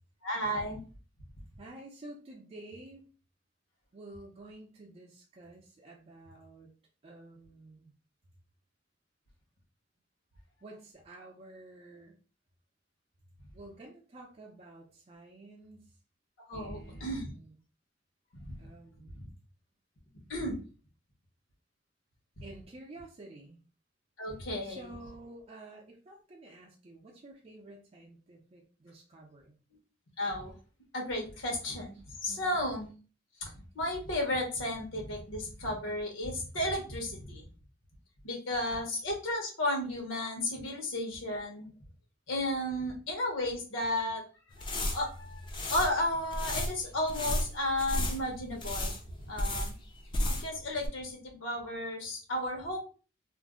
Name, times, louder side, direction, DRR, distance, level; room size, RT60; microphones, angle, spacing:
voice 1, 0.2-0.8 16.5-17.3 18.3-18.6 19.1-19.3 20.3-20.6 24.2-24.8 30.2-30.5 30.9-32.9 33.4-37.4 38.2-41.7 42.3-44.2 44.6-48.9 49.3-49.7 50.4-52.8, left 1 dB, 85° left, 1 dB, 1.0 m, -33 dB
voice 2, 1.6-3.0 3.9-6.7 7.0-7.9 10.6-12.2 13.5-16.0 16.5-17.6 18.6-19.2 22.4-23.6 24.6-29.6 32.3-32.6, right 2 dB, 30° right, -2 dB, 0.5 m, -51 dB
sound 1, 44.5-50.6 50.8-50.9, left 1 dB, 25° left, 0.4 m, -34 dB
2.5 x 2.0 x 3.6 m, 0.36 s
head